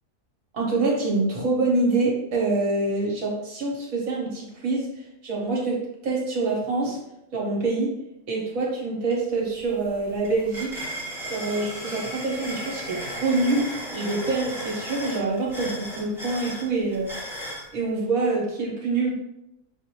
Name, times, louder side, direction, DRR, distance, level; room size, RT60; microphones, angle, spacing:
voice 1, 0.5-7.0 7.3-8.0 8.3-10.8 11.3-17.1 17.7-19.1, right 3 dB, 65° right, -3 dB, 1.4 m, -26 dB
sound 1, 9.1-9.2 9.5-17.7, equal, ahead, 0.9 m, -36 dB
5.5 x 2.5 x 2.9 m, 0.83 s
omnidirectional pair, 1.6 m